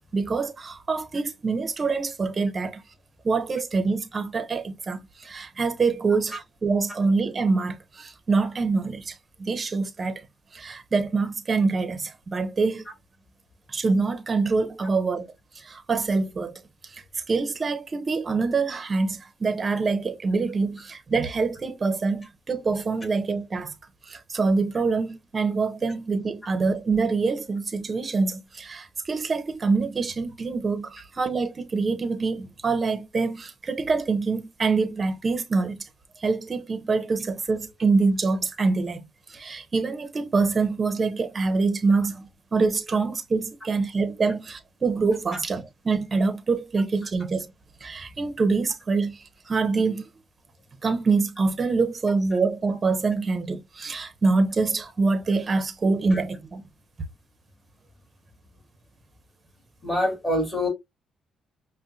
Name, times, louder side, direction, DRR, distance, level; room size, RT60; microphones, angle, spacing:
voice 1, 0.1-2.8 3.2-10.2 10.5-12.8 13.7-15.3 15.5-23.7 24.0-35.9 36.2-39.0 39.3-47.5 47.8-50.1 50.8-56.6, right 4 dB, 35° right, 0.8 m, -25 dB
voice 2, 59.8-60.7, left 1 dB, 15° left, 2.2 m, -25 dB
5.4 x 2.2 x 2.6 m
cardioid pair, 90°, 0 cm